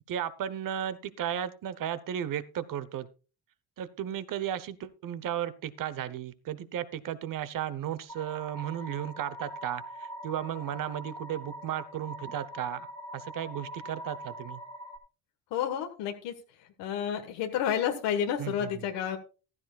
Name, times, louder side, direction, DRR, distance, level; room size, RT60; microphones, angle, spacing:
voice 1, 0.1-3.1 3.8-12.9 13.1-14.6 18.4-18.9, right 10 dB, 50° right, 15 dB, 1.0 m, -35 dB
sound 1, 8.1-15.0, right 1 dB, 10° left, 1.9 m, -43 dB
voice 2, 15.5-16.3 16.8-19.2, left 9 dB, 90° left, 5 dB, 1.5 m, -30 dB
15.0 x 12.5 x 2.4 m, 0.34 s
cardioid pair, 120°, 41 cm